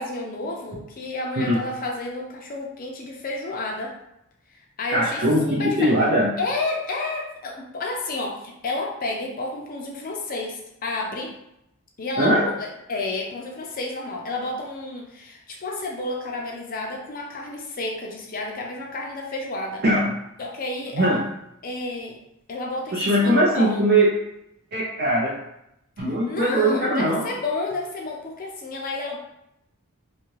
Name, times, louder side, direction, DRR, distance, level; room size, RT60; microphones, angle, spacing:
voice 1, 0.0-3.9 4.5-5.9 6.4-11.3 12.0-19.8 20.4-21.2 21.6-22.2 22.5-23.8 26.3-29.2, left 2 dB, 40° left, 0 dB, 0.5 m, -31 dB
voice 2, 4.9-6.4 12.2-12.5 19.8-20.2 20.9-21.3 22.9-24.1 24.7-25.3 26.0-27.2, right 1 dB, 45° right, -5 dB, 0.5 m, -20 dB
2.7 x 2.4 x 3.1 m, 0.82 s
head